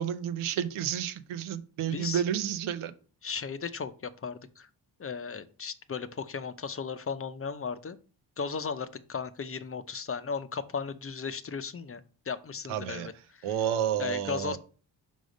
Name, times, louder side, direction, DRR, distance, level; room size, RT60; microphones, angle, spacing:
voice 1, 0.0-2.9 12.7-13.1 13.4-14.6, right 9 dB, 80° right, 0.8 m, -30 dB
voice 2, 1.9-2.2 3.2-4.7 5.0-8.0 8.4-13.5 14.0-14.6, left 5 dB, 30° left, 0.7 m, -36 dB
5.1 x 3.7 x 5.1 m
supercardioid pair, 55°, 49 cm